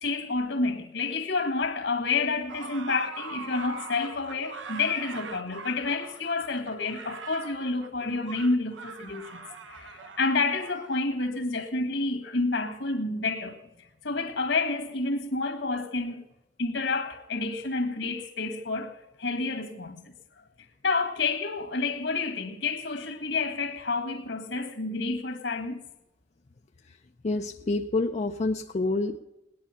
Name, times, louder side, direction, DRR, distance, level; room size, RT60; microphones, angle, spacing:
voice 1, 0.0-9.4 9.7-13.6 14.0-16.2 16.6-20.1 20.8-25.8, left 3 dB, 70° left, 1.8 m, -29 dB
sound 1, 2.5-11.0, right 4 dB, 80° right, 1.0 m, -42 dB
voice 2, 27.2-29.2, left 2 dB, 35° left, 0.5 m, -27 dB
18.5 x 10.5 x 5.7 m
head